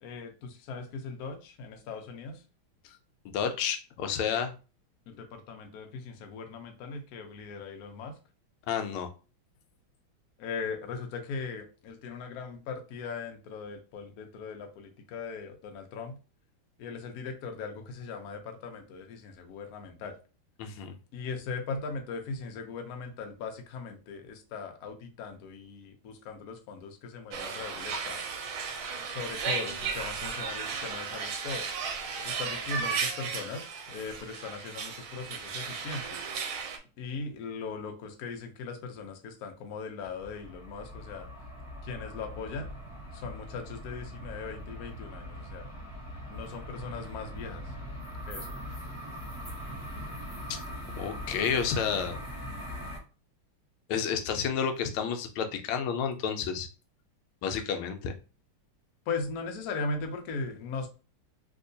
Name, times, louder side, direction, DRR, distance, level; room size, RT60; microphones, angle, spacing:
voice 1, 0.0-2.4 5.1-8.2 10.4-16.2 16.8-20.1 21.1-28.3 28.9-31.7 32.2-36.2 37.0-41.3 41.8-42.8 43.1-45.7 46.3-47.7 48.3-48.6 59.1-60.9, left 4 dB, 65° left, 4 dB, 0.9 m, -39 dB
voice 2, 3.3-4.5 8.7-9.1 20.6-21.0 51.0-52.2 53.9-56.7 57.4-58.1, left 7 dB, 85° left, 6 dB, 1.5 m, -30 dB
sound 1, 27.3-36.8, right 5 dB, 90° right, 1.5 m, -35 dB
sound 2, 40.0-53.0, equal, 10° left, 0.8 m, -41 dB
3.5 x 2.8 x 2.6 m, 0.34 s
omnidirectional pair, 2.3 m